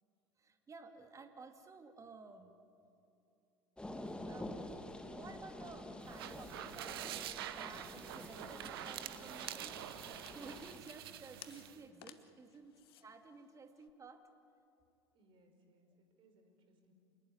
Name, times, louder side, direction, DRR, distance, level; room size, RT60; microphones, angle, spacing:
voice 1, 0.4-2.6 4.3-4.7 5.1-9.9 10.3-14.2, right 4 dB, 25° right, 6 dB, 2.6 m, -54 dB
sound 1, 3.8-10.8, left 1 dB, 5° left, 2.0 m, -48 dB
sound 2, 6.0-11.8, right 12 dB, 65° right, 1.1 m, -46 dB
sound 3, 8.8-13.9, left 11 dB, 65° left, 1.2 m, -61 dB
voice 2, 15.1-16.9, right 1 dB, 40° right, 5 dB, 5.1 m, -69 dB
27.5 x 19.5 x 9.6 m, 2.7 s
figure-of-eight pair, 70°, 14 cm